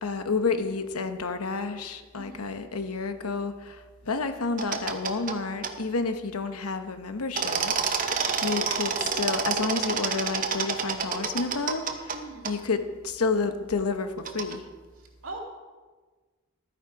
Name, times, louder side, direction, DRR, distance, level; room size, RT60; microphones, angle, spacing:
voice 1, 0.0-3.8 4.1-8.1 8.4-12.1 12.4-12.8 13.0-14.6, left 4 dB, 80° left, 8 dB, 0.9 m, -30 dB
voice 2, 2.1-2.6 12.1-12.6 15.0-15.4, right 2 dB, 65° right, 0 dB, 2.2 m, -42 dB
sound 1, 4.6-5.4 5.6-5.7 7.4-12.2 12.4-12.5 14.2-14.6, right 5 dB, 35° right, 0.8 m, -28 dB
13.0 x 9.0 x 4.8 m, 1.4 s
head